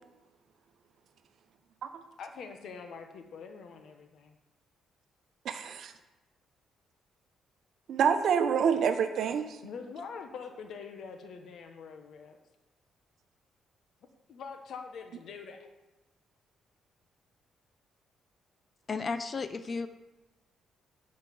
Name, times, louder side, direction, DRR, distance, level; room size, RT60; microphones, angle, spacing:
voice 1, 2.2-4.4 9.6-12.4 14.3-15.7, left 5 dB, 65° left, 5 dB, 1.4 m, -44 dB
voice 2, 5.4-5.9 7.9-9.6, right 7 dB, 65° right, 8 dB, 0.9 m, -27 dB
voice 3, 18.9-19.9, left 4 dB, 40° left, 11 dB, 0.8 m, -33 dB
11.0 x 5.2 x 7.2 m, 1.1 s
cardioid pair, 90°, 0 cm